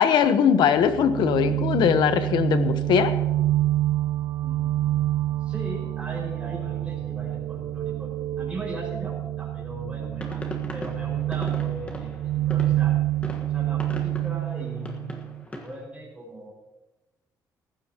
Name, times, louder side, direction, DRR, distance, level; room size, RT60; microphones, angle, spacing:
voice 1, 0.0-3.1, left 8 dB, 85° left, 10 dB, 1.1 m, -20 dB
sound 1, 0.8-15.4, right 14 dB, 70° right, 0.4 m, -27 dB
voice 2, 4.3-10.4 10.7-13.0 13.4-16.5, right 1 dB, 15° right, -4 dB, 5.6 m, -39 dB
sound 2, 10.1-15.8, left 1 dB, 15° left, 1.5 m, -39 dB
18.5 x 15.0 x 3.0 m, 1.0 s
cardioid pair, 155°, 7 cm